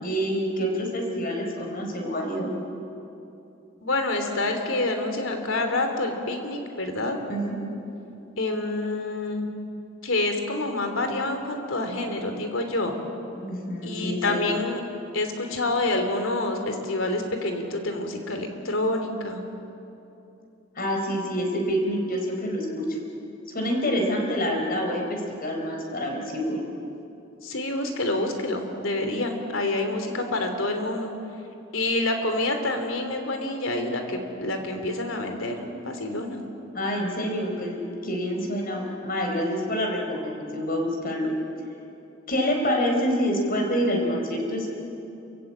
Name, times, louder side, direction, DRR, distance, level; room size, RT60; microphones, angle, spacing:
voice 1, 0.0-2.5 7.3-7.7 13.3-14.4 20.8-22.8 23.5-26.6 36.7-41.3 42.3-44.7, equal, 45° left, 2 dB, 4.4 m, -27 dB
voice 2, 3.8-7.2 8.4-9.5 10.0-13.0 13.8-14.8 15.1-19.4 27.4-31.1 31.7-36.4, left 2 dB, 85° left, 5 dB, 3.2 m, -27 dB
29.0 x 15.5 x 8.8 m, 2.8 s
head